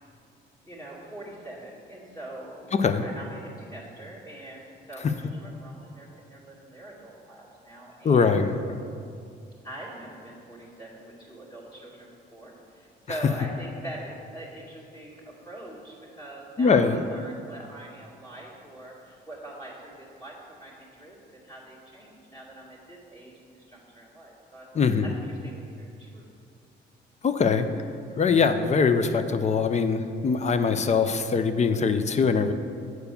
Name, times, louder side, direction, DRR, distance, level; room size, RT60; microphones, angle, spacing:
voice 1, 0.7-8.4 9.6-24.7 25.0-26.3, right 1 dB, 20° left, -6 dB, 2.2 m, -43 dB
voice 2, 2.7-3.0 8.0-8.6 16.6-17.0 24.7-25.0 27.2-27.7 28.2-32.5, left 5 dB, 35° left, 10 dB, 0.5 m, -22 dB
7.9 x 4.7 x 6.9 m, 2.4 s
cardioid pair, 90°, 20 cm